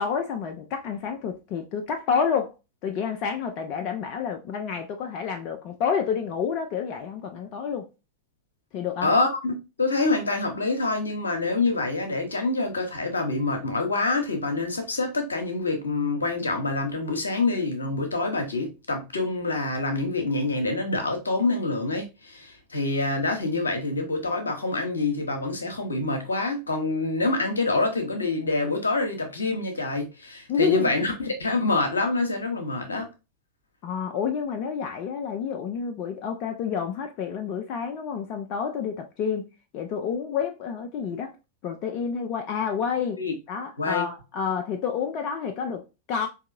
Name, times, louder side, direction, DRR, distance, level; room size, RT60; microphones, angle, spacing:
voice 1, 0.0-2.5 2.8-7.9 8.7-9.1 30.5-30.9 33.8-41.3 41.6-43.2 43.5-46.3, left 6 dB, 40° left, 0.5 m, -29 dB
voice 2, 9.0-33.1 43.2-43.3 43.8-44.1, left 3 dB, 75° left, 0.9 m, -26 dB
4.6 x 2.7 x 2.6 m
figure-of-eight pair, 90°, 0 cm